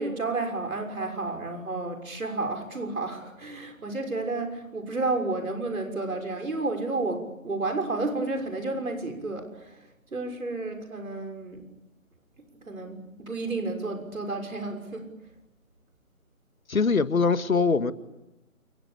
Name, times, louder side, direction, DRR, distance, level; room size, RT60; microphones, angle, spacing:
voice 1, 0.0-11.6 12.6-15.1, right 3 dB, 75° right, 4 dB, 6.4 m, -31 dB
voice 2, 16.7-17.9, left 4 dB, 75° left, 11 dB, 2.0 m, -22 dB
29.0 x 23.0 x 8.5 m, 0.94 s
figure-of-eight pair, 155°, 42 cm